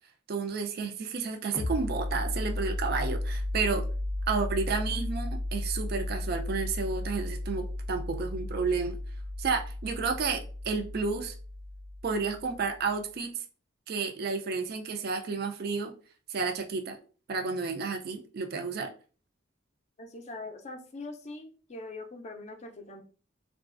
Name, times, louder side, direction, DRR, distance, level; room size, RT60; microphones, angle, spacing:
voice 1, 0.3-3.8 4.3-9.0 9.4-11.3 12.0-13.4 13.9-15.9 16.3-17.0 17.3-18.9, right 4 dB, 50° right, 4 dB, 0.4 m, -31 dB
Kick very low & deep, 1.5-12.9, left 1 dB, 90° right, 1.0 m, -34 dB
voice 2, 20.0-23.0, left 2 dB, 35° left, 5 dB, 0.4 m, -42 dB
3.8 x 2.4 x 2.4 m, 0.40 s
head